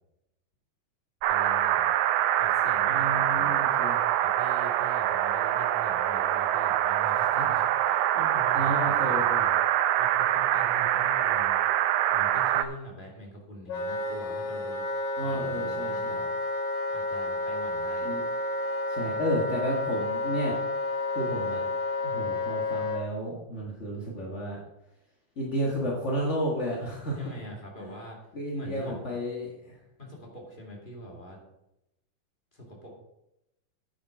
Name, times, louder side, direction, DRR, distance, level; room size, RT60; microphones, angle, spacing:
sound 1, 1.2-12.6, right 12 dB, 80° right, 1.8 m, -25 dB
voice 1, 1.3-1.9 2.4-3.6 4.2-11.6 12.1-14.9 15.2-16.3 16.9-18.1 27.1-29.2 30.0-31.4 32.5-33.0, equal, 20° left, -1 dB, 1.8 m, -44 dB
voice 2, 2.9-4.0 8.5-9.5 15.2-15.9 18.0-18.2 18.9-20.5 21.1-21.6 22.0-24.6 25.4-27.2 27.8-27.9 28.3-29.7, equal, 40° left, -3 dB, 1.0 m, -32 dB
Wind instrument woodwind instrument, 13.7-23.0, left 2 dB, 85° left, 3.6 m, -31 dB
9.9 x 7.6 x 4.8 m, 0.88 s
omnidirectional pair, 3.8 m